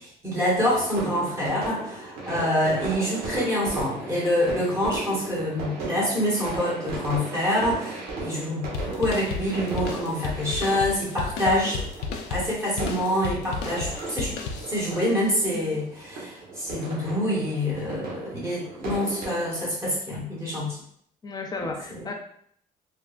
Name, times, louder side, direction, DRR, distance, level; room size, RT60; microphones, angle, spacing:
voice 1, 0.2-11.8 12.3-14.4 14.7-20.8 21.6-22.1, left 1 dB, 15° right, -7 dB, 1.0 m, -26 dB
sound 1, 0.6-19.7, right 3 dB, 60° right, 0.9 m, -36 dB
sound 2, 8.7-15.1, left 5 dB, 85° left, 0.4 m, -33 dB
voice 2, 21.2-22.1, left 3 dB, 25° left, 2 dB, 0.5 m, -34 dB
3.4 x 2.0 x 2.4 m, 0.66 s
cardioid pair, 110°, 17 cm